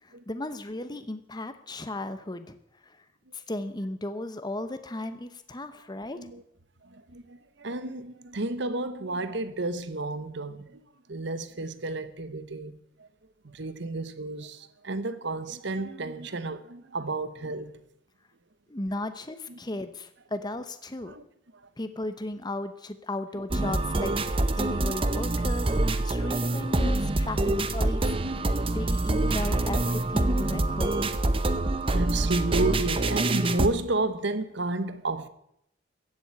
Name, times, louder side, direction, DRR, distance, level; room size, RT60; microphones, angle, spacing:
voice 1, 0.0-2.6 2.8-3.0 3.3-6.2 18.7-21.1 21.8-25.7 26.0-28.1 28.7-31.1, left 1 dB, 20° left, 0.9 m, -35 dB
voice 2, 6.8-13.1 13.4-17.8 19.5-19.6 21.1-21.2 31.6-35.3, right 2 dB, 60° right, 1.1 m, -32 dB
sound 1, 23.5-33.7, right 2 dB, 25° right, 0.8 m, -26 dB
15.5 x 7.8 x 8.7 m
head